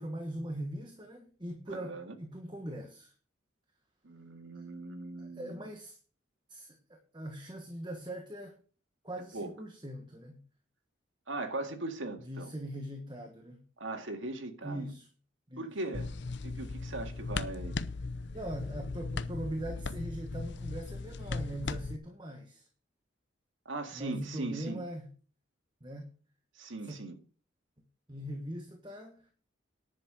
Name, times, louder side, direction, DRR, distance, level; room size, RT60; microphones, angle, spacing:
voice 1, 0.0-3.1 4.5-4.7 5.2-6.0 6.5-8.5 9.0-10.4 12.2-13.6 14.6-15.1 15.5-15.7 18.3-22.7 23.9-25.1 25.8-26.1 26.8-27.0 28.1-29.3, right 1 dB, 25° right, 1.4 m, -41 dB
voice 2, 1.7-2.1 4.0-5.7 9.3-9.5 11.3-12.5 13.8-14.9 15.6-16.1 16.4-17.8 23.7-24.8 26.6-27.2, right 2 dB, 80° right, 2.0 m, -39 dB
sound 1, 15.9-22.0, left 3 dB, 60° left, 0.7 m, -37 dB
10.5 x 7.3 x 6.2 m
head